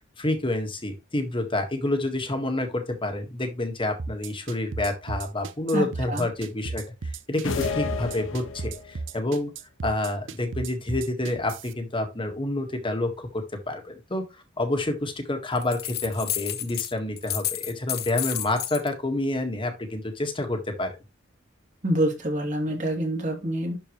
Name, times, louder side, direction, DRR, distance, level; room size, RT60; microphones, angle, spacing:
voice 1, 0.2-9.5 9.8-14.2 14.6-20.9, left 2 dB, 25° left, 5 dB, 1.7 m, -28 dB
sound 1, 4.0-11.7, right 3 dB, 70° right, 0.6 m, -34 dB
voice 2, 5.7-6.2 21.8-23.8, right 1 dB, 40° right, 1 dB, 2.8 m, -26 dB
sound 2, 7.4-9.0, left 4 dB, 90° left, 1.2 m, -31 dB
sound 3, 15.6-16.9 17.2-18.9, left 13 dB, 55° left, 0.9 m, -31 dB
11.5 x 4.7 x 3.2 m, 0.25 s
head